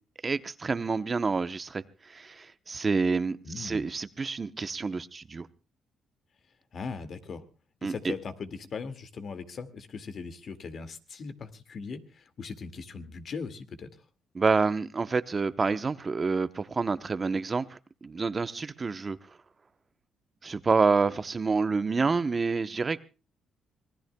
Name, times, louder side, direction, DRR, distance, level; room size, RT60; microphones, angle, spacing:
voice 1, 0.2-5.5 7.8-8.1 14.3-19.2 20.4-23.0, right 4 dB, 30° right, 12 dB, 0.8 m, -28 dB
voice 2, 3.5-3.9 6.7-7.4 7.8-13.9, left 5 dB, 55° left, 10 dB, 2.0 m, -39 dB
26.0 x 19.5 x 2.2 m, 0.33 s
cardioid pair, 90°, 0 cm